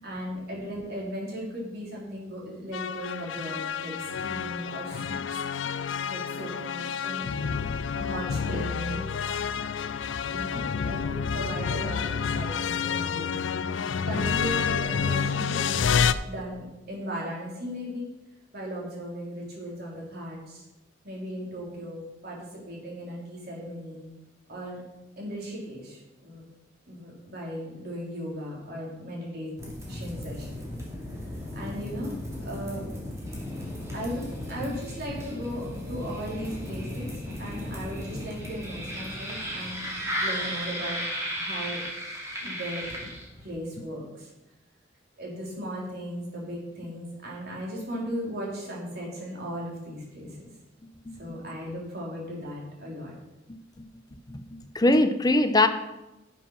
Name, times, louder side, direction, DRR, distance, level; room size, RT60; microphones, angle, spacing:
voice 1, 0.0-5.4 6.1-7.4 7.9-9.1 10.3-13.5 14.0-16.0 16.2-18.1 18.5-20.6 21.0-24.1 24.5-24.8 25.2-26.4 26.9-29.5 29.9-30.5 31.5-32.8 33.9-37.1 37.4-39.8 40.2-41.0 41.3-41.8 42.4-42.9 43.4-44.3 45.1-50.4 51.2-53.1, equal, 55° right, -3 dB, 4.0 m, -37 dB
sound 1, 2.7-16.1, left 6 dB, 85° left, 0.5 m, -29 dB
sound 2, 29.6-43.5, equal, 15° right, 3.0 m, -35 dB
voice 2, 51.0-51.4 53.5-53.9 54.3-55.7, left 2 dB, 20° left, 8 dB, 0.7 m, -23 dB
10.5 x 7.4 x 5.8 m, 0.98 s
head